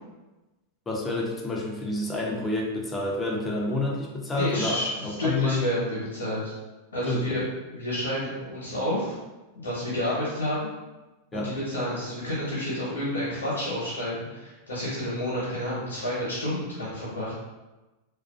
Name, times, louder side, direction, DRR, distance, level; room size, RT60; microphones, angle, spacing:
voice 1, 0.9-5.6 7.1-7.2 11.3-11.5, left 2 dB, 20° left, -2 dB, 0.5 m, -29 dB
voice 2, 4.3-6.5 6.9-7.4 7.7-9.2 9.5-10.7 11.3-17.3, left 1 dB, 90° left, -9 dB, 0.9 m, -30 dB
2.4 x 2.2 x 2.3 m, 1.1 s
hypercardioid pair, 100°, 0 cm